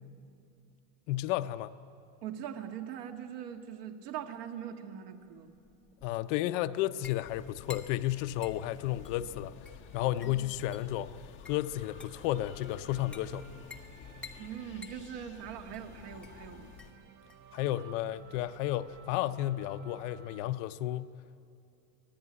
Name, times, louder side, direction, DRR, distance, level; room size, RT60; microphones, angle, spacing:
voice 1, 1.1-1.7 6.0-9.5 9.9-11.1 11.5-13.5 17.5-21.1, left 14 dB, 50° left, 12 dB, 0.6 m, -32 dB
voice 2, 2.2-5.5 10.2-10.3 14.4-16.7, right 9 dB, 70° right, 6 dB, 2.0 m, -42 dB
sound 1, 5.2-19.2, left 4 dB, ahead, 1.2 m, -54 dB
sound 2, 7.2-16.9, left 8 dB, 25° left, 1.2 m, -52 dB
sound 3, 11.6-20.5, right 8 dB, 25° right, 0.7 m, -56 dB
25.5 x 18.5 x 9.7 m, 2.6 s
cardioid pair, 180°, 50 cm